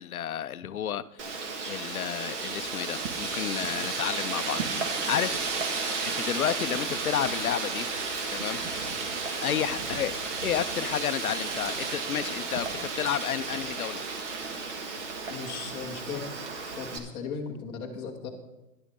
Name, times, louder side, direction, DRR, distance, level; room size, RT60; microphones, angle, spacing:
voice 1, 0.0-1.3 1.7-5.4 6.0-7.9 8.3-8.6 9.4-14.0, left 10 dB, 60° left, 15 dB, 0.6 m, -31 dB
Wind, 1.2-17.0, right 4 dB, 45° right, 1.8 m, -33 dB
voice 2, 15.3-16.4 16.6-18.3, left 5 dB, 10° left, -2 dB, 0.8 m, -37 dB
13.0 x 11.0 x 3.7 m, 0.97 s
hypercardioid pair, 155°, 49 cm